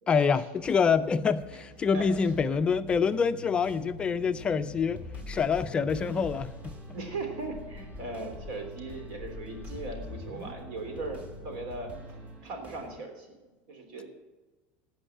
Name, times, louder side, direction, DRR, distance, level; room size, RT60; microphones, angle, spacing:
voice 1, 0.1-5.0 5.3-6.7, left 6 dB, 20° left, 10 dB, 0.4 m, -26 dB
sound 1, 0.6-13.0, right 1 dB, 25° right, 1.6 m, -50 dB
sound 2, 1.8-12.4, equal, 55° right, 1.5 m, -47 dB
sound 3, 4.9-6.8 7.1-7.2 7.5-8.0 8.4-10.5, left 2 dB, 5° right, 1.1 m, -43 dB
voice 2, 6.9-11.9 12.4-13.3 13.7-14.1, right 2 dB, 75° right, 4 dB, 3.3 m, -38 dB
16.0 x 5.5 x 7.5 m, 1.2 s
cardioid pair, 155°, 5 cm